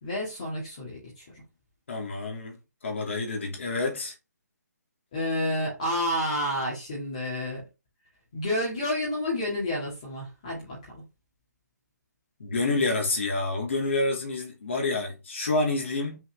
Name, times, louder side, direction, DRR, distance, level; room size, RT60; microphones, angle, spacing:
voice 1, 0.0-1.4 5.1-7.6 8.3-10.8, left 1 dB, 25° left, 2.1 m, -30 dB
voice 2, 1.9-2.6 2.8-4.1 12.4-16.2, left 3 dB, 45° left, 2.7 m, -28 dB
6.0 x 4.6 x 3.5 m
hypercardioid pair, 180°, 10 cm